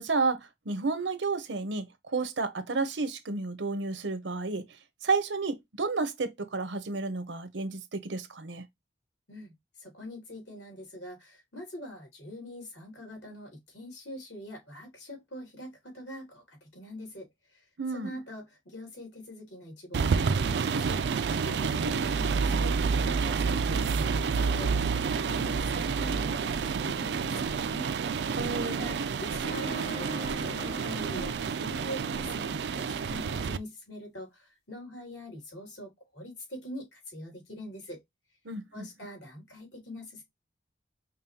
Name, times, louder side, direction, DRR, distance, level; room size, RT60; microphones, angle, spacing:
voice 1, 0.0-1.9 2.1-4.6 5.0-8.6 17.8-18.2 28.4-29.0 38.4-38.8, right 3 dB, 80° right, 0.8 m, -31 dB
voice 2, 9.3-17.3 17.9-27.9 28.6-38.0 38.7-40.2, equal, 75° left, 2.8 m, -43 dB
sound 1, 19.9-33.6, right 5 dB, 60° right, 0.3 m, -29 dB
sound 2, 29.4-32.4, equal, 60° left, 2.6 m, -43 dB
5.4 x 2.3 x 2.7 m
head